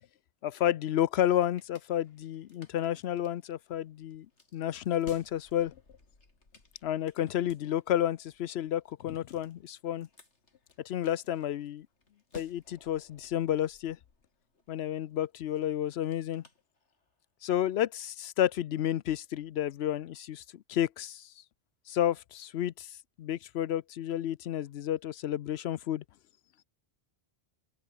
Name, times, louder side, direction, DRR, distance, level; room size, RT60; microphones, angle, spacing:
voice 1, 0.4-4.3 4.5-5.7 6.8-10.1 10.8-11.9 12.3-14.0 14.7-16.4 17.4-21.3 21.9-22.9 23.2-26.0, left 11 dB, 70° left, 0.8 m, -31 dB
sound 1, 1.0-17.3, left 3 dB, 85° left, 3.7 m, -58 dB
open air
omnidirectional pair, 1.1 m